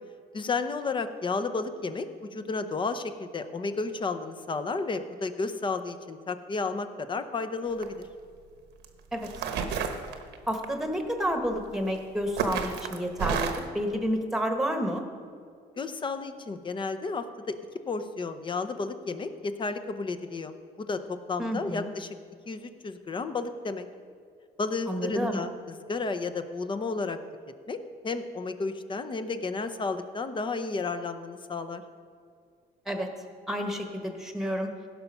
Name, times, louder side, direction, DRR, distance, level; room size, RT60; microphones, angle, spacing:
voice 1, 0.3-2.1 2.3-8.1 15.8-17.5 17.9-22.1 22.5-23.9 24.6-27.2 27.7-27.8 28.0-31.8, left 3 dB, 30° left, 9 dB, 0.7 m, -32 dB
sound 1, 7.7-8.0 8.8-8.9 9.2-10.6 11.7-12.0 12.4-13.7, right 6 dB, 80° right, 1.1 m, -30 dB
voice 2, 10.5-15.0 21.4-21.9 24.9-25.4 32.8-33.1 33.5-34.7, equal, ahead, 5 dB, 1.3 m, -30 dB
16.5 x 5.9 x 5.5 m, 2.2 s
cardioid pair, 110°, 17 cm